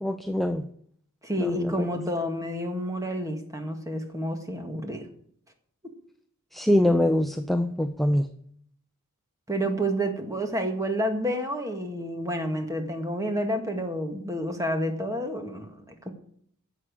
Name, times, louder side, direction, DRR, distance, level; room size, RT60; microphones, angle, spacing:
voice 1, 0.0-0.6 1.4-1.9 6.5-8.3, left 1 dB, ahead, 7 dB, 0.6 m, -24 dB
voice 2, 1.2-5.0 9.5-16.1, equal, 15° right, 5 dB, 1.9 m, -29 dB
11.0 x 7.6 x 8.5 m, 0.64 s
head